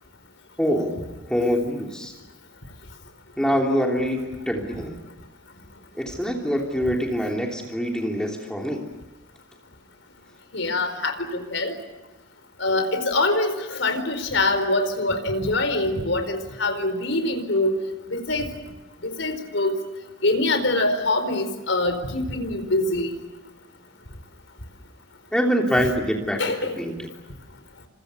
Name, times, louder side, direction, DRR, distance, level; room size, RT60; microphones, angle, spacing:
voice 1, 0.6-2.1 3.4-5.0 5.9-8.8 25.3-26.4 26.8-27.1, equal, 5° left, 1 dB, 3.1 m, -24 dB
voice 2, 10.5-11.8 12.6-17.8 18.1-18.5 19.0-19.8 20.2-23.1 26.4-26.8, left 2 dB, 80° left, 8 dB, 4.6 m, -24 dB
29.5 x 26.5 x 6.9 m, 1.1 s
head